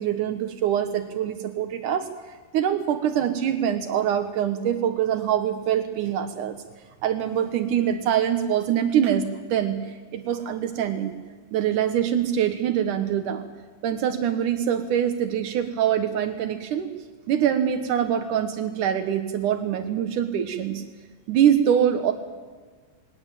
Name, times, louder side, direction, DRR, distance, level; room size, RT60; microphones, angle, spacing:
voice 1, 0.0-2.1 2.5-6.6 7.0-11.1 11.5-13.5 13.8-16.9 17.3-20.8 21.3-22.1, right 9 dB, 90° right, 8 dB, 1.7 m, -24 dB
21.0 x 18.5 x 9.0 m, 1.5 s
omnidirectional pair, 5.3 m